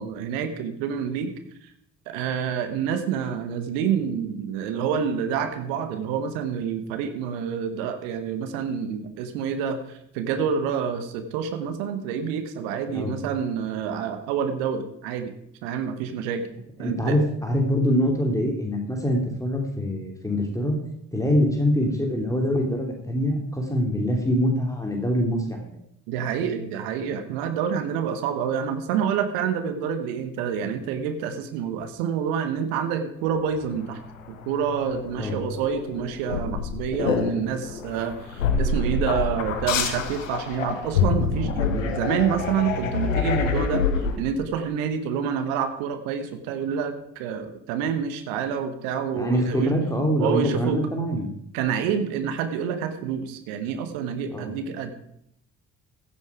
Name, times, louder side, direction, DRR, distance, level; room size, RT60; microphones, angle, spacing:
voice 1, 0.0-1.3 1.6-1.7 2.1-15.3 15.6-16.5 16.8-17.2 26.1-34.0 34.3-43.8 44.2-49.7 50.2-50.8 51.5-54.9, right 7 dB, 65° right, 9 dB, 1.3 m, -28 dB
voice 2, 16.8-20.8 21.1-25.7 35.2-35.4 49.1-51.3 54.3-54.5, equal, 10° left, 1 dB, 3.1 m, -24 dB
sound 1, 33.7-44.2, left 5 dB, 80° left, 1.1 m, -27 dB
15.0 x 8.6 x 4.9 m, 0.73 s
figure-of-eight pair, 45°, 39 cm